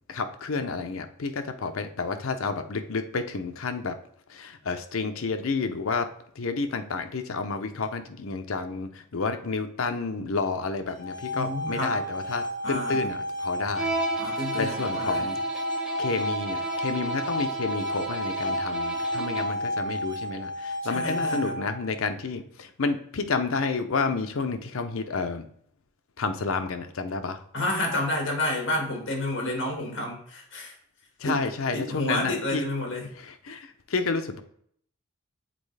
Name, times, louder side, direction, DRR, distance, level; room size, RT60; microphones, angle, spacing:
voice 1, 0.1-4.0 4.3-13.9 14.3-15.4 16.0-25.5 26.2-27.4 31.2-32.6 33.2-34.4, left 4 dB, 75° left, 7 dB, 0.6 m, -30 dB
sound 1, 10.9-21.9, equal, 35° left, 2.0 m, -31 dB
voice 2, 11.3-12.0 12.6-13.1 14.2-15.3 20.8-21.6 27.5-30.7 31.2-31.4 31.7-33.1, left 1 dB, 60° left, 0 dB, 1.8 m, -30 dB
Bowed string instrument, 13.8-19.7, right 3 dB, 5° right, 0.7 m, -35 dB
7.6 x 4.1 x 3.3 m, 0.64 s
head